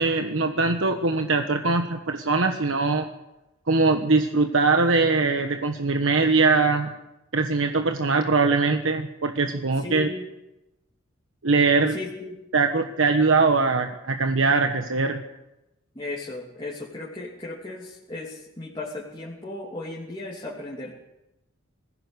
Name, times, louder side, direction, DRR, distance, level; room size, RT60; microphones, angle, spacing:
voice 1, 0.0-3.1 3.7-6.9 7.3-10.1 11.4-11.9 12.5-15.2, right 3 dB, 85° right, 6 dB, 1.3 m, -22 dB
voice 2, 9.8-10.3 11.9-12.4 15.9-21.0, left 2 dB, 25° left, -4 dB, 3.0 m, -36 dB
20.5 x 16.5 x 8.1 m, 0.96 s
head